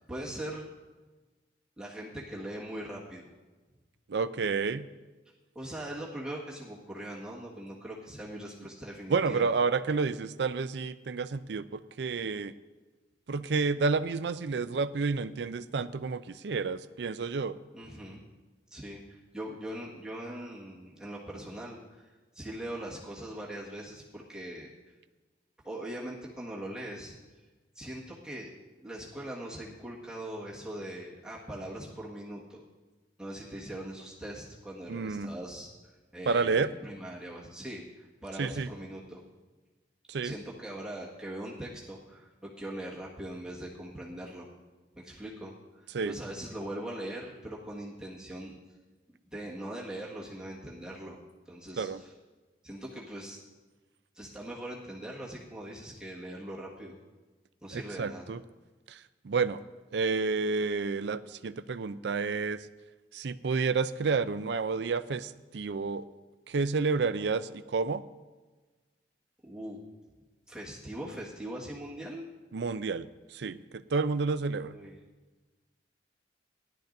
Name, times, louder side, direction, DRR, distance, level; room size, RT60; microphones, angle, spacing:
voice 1, 0.1-0.7 1.8-3.3 5.5-9.5 17.7-18.2 18.7-24.7 25.6-27.2 27.7-28.5 28.8-32.6 33.2-39.2 40.2-44.5 44.9-48.5 49.2-51.2 51.4-52.1 52.6-53.4 54.1-57.0 57.6-58.3 69.4-69.8 70.5-72.2 74.6-74.9, right 1 dB, 5° right, -5 dB, 1.7 m, -41 dB
voice 2, 4.1-4.9 9.1-12.5 13.3-17.6 34.9-35.3 36.3-36.7 38.4-38.7 40.1-40.3 45.9-46.2 51.8-52.0 57.7-58.4 58.9-59.0 59.2-59.6 59.9-62.6 63.1-66.1 66.5-68.0 72.5-73.1 73.3-74.7, right 4 dB, 70° right, 13 dB, 0.4 m, -30 dB
17.0 x 11.5 x 2.6 m, 1.3 s
head